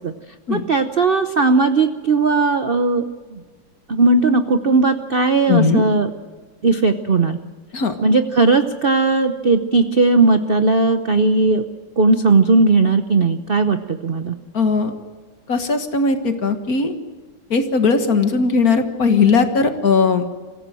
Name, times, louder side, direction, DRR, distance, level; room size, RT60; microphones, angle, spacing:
voice 1, 0.5-3.0 3.3-3.4 3.9-6.1 6.6-7.4 8.0-11.6 12.0-14.3, right 3 dB, 45° right, 9 dB, 0.7 m, -17 dB
voice 2, 5.5-5.8 7.7-7.9 14.5-14.9 15.5-16.9 17.5-20.2, left 4 dB, 50° left, 7 dB, 2.0 m, -18 dB
24.5 x 15.5 x 7.6 m, 1.5 s
omnidirectional pair, 2.1 m